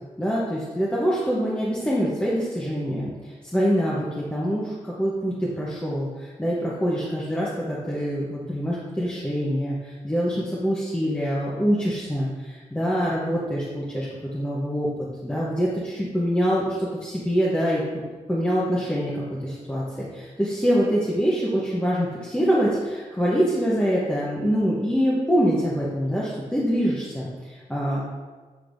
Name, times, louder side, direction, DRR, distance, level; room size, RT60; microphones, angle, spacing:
voice 1, 0.2-3.1 3.5-14.1 14.3-14.9 15.2-17.8 18.3-28.0, equal, 10° left, -6 dB, 0.8 m, -25 dB
8.0 x 5.2 x 2.6 m, 1.4 s
wide cardioid pair, 160°, 13 cm